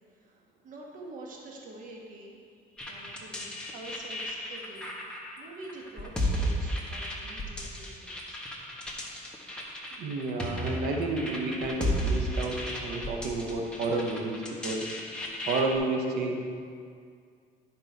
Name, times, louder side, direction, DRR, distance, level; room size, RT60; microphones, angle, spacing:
voice 1, 0.1-5.0 5.4-8.5, right 2 dB, 55° right, -1 dB, 1.3 m, -47 dB
sound 1, 2.8-15.8, equal, 5° left, 1.3 m, -34 dB
voice 2, 10.0-14.9 15.5-16.4, right 3 dB, 80° right, 2 dB, 0.9 m, -31 dB
10.5 x 5.3 x 4.6 m, 2.2 s
cardioid pair, 110°, 17 cm